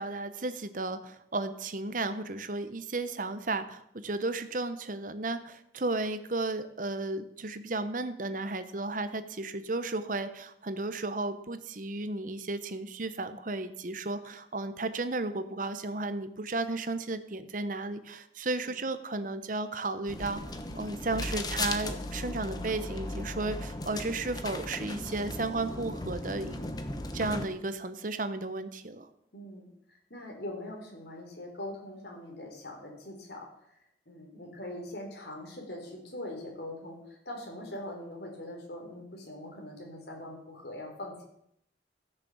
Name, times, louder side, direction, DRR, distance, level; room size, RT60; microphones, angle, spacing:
voice 1, 0.0-26.6 27.1-29.1, right 2 dB, 45° right, 11 dB, 0.9 m, -34 dB
sound 1, 20.1-27.5, left 2 dB, 20° left, 1.0 m, -37 dB
voice 2, 29.3-29.7 30.1-33.5 34.1-41.2, left 1 dB, 60° left, 0 dB, 3.9 m, -42 dB
14.5 x 6.8 x 7.2 m, 0.74 s
head